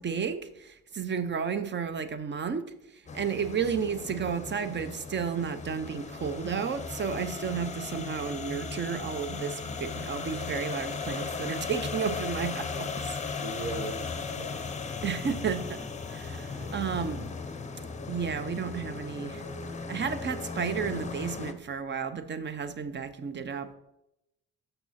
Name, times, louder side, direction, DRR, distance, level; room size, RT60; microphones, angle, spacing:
voice 1, 0.0-2.7 3.1-13.1 15.0-15.8 16.1-17.3 18.1-19.4 19.9-23.7, right 6 dB, 35° right, 12 dB, 0.7 m, -32 dB
sound 1, 3.1-21.5, left 4 dB, 25° left, 0.7 m, -37 dB
voice 2, 13.4-14.7 16.5-16.9, right 3 dB, 70° right, 5 dB, 1.0 m, -39 dB
6.7 x 5.9 x 4.1 m, 0.84 s
cardioid pair, 90°, 30 cm